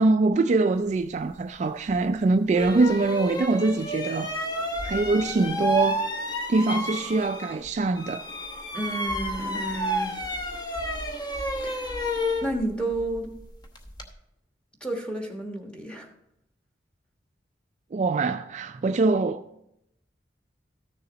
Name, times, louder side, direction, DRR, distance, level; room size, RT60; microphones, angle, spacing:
voice 1, 0.0-4.3 4.8-6.0 6.5-8.2 17.9-19.6, right 3 dB, 40° right, 0.3 m, -23 dB
sound 1, 1.9-2.0 2.5-7.7 7.9-14.1, equal, 25° left, 0.9 m, -31 dB
voice 2, 8.7-10.2 11.6-11.8 12.4-13.3 14.8-16.1, right 1 dB, 5° left, 1.3 m, -31 dB
13.5 x 6.8 x 4.0 m
head